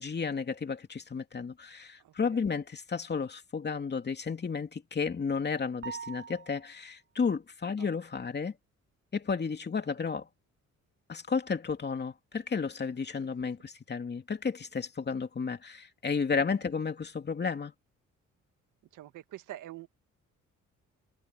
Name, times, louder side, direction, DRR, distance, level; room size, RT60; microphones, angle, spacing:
voice 1, 0.0-8.5 9.1-10.3 11.1-17.7, left 5 dB, 35° left, 2.8 m, -32 dB
sound 1, 5.8-6.9, right 6 dB, 40° right, 7.0 m, -43 dB
voice 2, 18.9-19.9, right 14 dB, 85° right, 1.9 m, -45 dB
cardioid pair, 90°, 30 cm